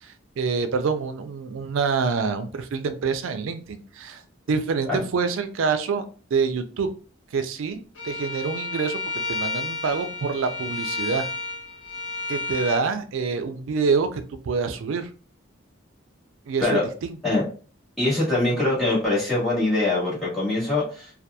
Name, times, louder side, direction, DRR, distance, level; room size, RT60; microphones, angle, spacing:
voice 1, 0.0-4.2 4.5-6.0 6.3-6.9 7.3-9.0 9.3-11.3 12.3-15.1 16.5-17.2, right 5 dB, 80° right, 9 dB, 0.4 m, -26 dB
Bowed string instrument, 8.0-12.8, left 3 dB, 90° left, 0.7 m, -31 dB
voice 2, 18.0-21.1, left 2 dB, ahead, -8 dB, 1.4 m, -23 dB
2.8 x 2.2 x 2.2 m, 0.39 s
head